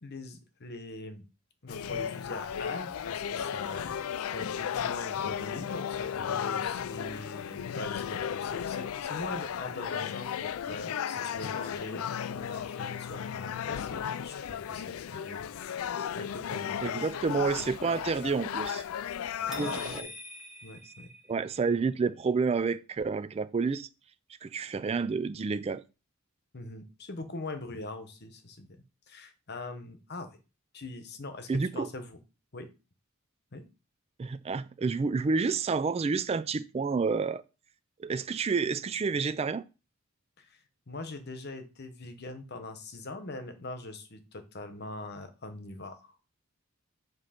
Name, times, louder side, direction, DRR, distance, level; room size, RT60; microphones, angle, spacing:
voice 1, 0.0-1.3 1.6-4.0 4.3-15.8 16.1-17.0 19.5-20.1 20.6-21.1 26.5-30.4 30.7-32.2 32.5-32.7 33.5-33.6 40.4-40.6 40.9-46.1, left 2 dB, 50° left, 1.1 m, -42 dB
sound 1, 1.7-20.0, left 8 dB, 90° left, 0.4 m, -35 dB
voice 2, 16.8-18.8 19.6-20.0 21.3-23.9 24.4-25.8 31.5-31.9 34.2-37.4 38.0-39.6, right 4 dB, 30° right, 0.3 m, -29 dB
sound 2, 19.5-21.7, equal, ahead, 2.0 m, -45 dB
7.6 x 3.0 x 5.7 m
head